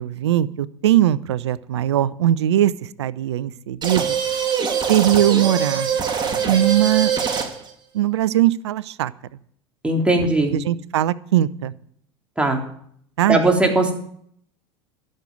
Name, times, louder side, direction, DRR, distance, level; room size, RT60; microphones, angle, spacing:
voice 1, 0.0-2.7 3.0-4.2 4.9-5.9 6.5-7.1 7.9-9.1 10.5-11.7 13.2-13.5, right 12 dB, 80° right, 19 dB, 0.6 m, -20 dB
sound 1, 3.8-7.7, right 7 dB, 30° right, 2.5 m, -23 dB
voice 2, 9.8-10.6 12.4-12.6 13.3-13.9, right 2 dB, 10° right, 1 dB, 3.3 m, -18 dB
12.0 x 6.5 x 9.3 m, 0.65 s
hypercardioid pair, 80°, 14 cm